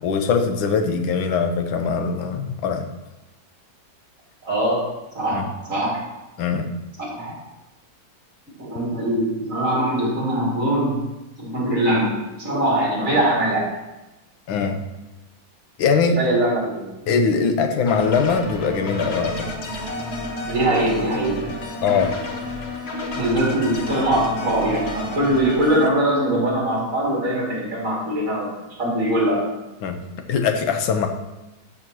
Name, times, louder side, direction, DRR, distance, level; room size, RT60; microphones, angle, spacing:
voice 1, 0.0-2.9 5.3-5.4 6.4-6.7 14.5-14.8 15.8-16.2 17.1-19.5 21.8-22.1 29.8-30.0 30.3-31.1, left 5 dB, 90° left, 6 dB, 1.6 m, -21 dB
voice 2, 4.4-6.1 7.1-7.4 8.6-11.0 11.4-13.7 16.2-16.9 20.5-21.5 23.1-28.5 28.8-29.5, right 1 dB, 40° right, -5 dB, 3.2 m, -22 dB
sound 1, 17.9-25.9, left 1 dB, 45° left, 0.9 m, -31 dB
12.5 x 6.4 x 3.1 m, 1.0 s
omnidirectional pair, 2.1 m